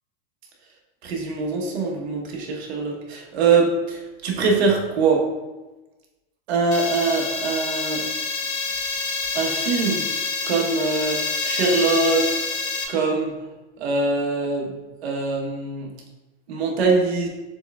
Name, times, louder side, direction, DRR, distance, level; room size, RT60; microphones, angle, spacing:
voice 1, 1.0-5.2 6.5-8.1 9.3-10.0 10.4-12.3 12.9-13.3 13.8-14.7 15.0-15.9 16.5-17.3, right 4 dB, 80° right, 0 dB, 1.2 m, -23 dB
sound 1, 6.7-12.8, left 4 dB, 85° left, 1.0 m, -27 dB
6.7 x 3.3 x 2.3 m, 1.1 s
supercardioid pair, 130°, 32 cm